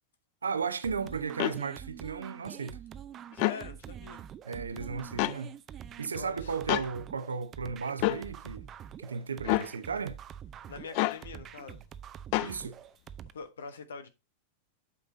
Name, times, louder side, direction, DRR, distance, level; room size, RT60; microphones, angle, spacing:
voice 1, 0.4-2.8 4.4-5.6 6.0-8.7 9.0-10.2 12.4-12.8, right 5 dB, 90° right, 0.8 m, -35 dB
sound 1, 0.8-13.3, right 9 dB, 35° right, 0.6 m, -46 dB
sound 2, 1.4-1.6 3.3-3.6 5.2-5.4 6.7-6.9 8.0-8.2 9.4-9.7 10.9-11.2 12.3-12.5, left 20 dB, 55° left, 0.3 m, -27 dB
voice 2, 3.3-4.2 6.1-6.6 10.7-11.8 13.3-14.1, left 5 dB, 80° left, 1.1 m, -43 dB
8.5 x 5.4 x 4.0 m
hypercardioid pair, 100°, 0 cm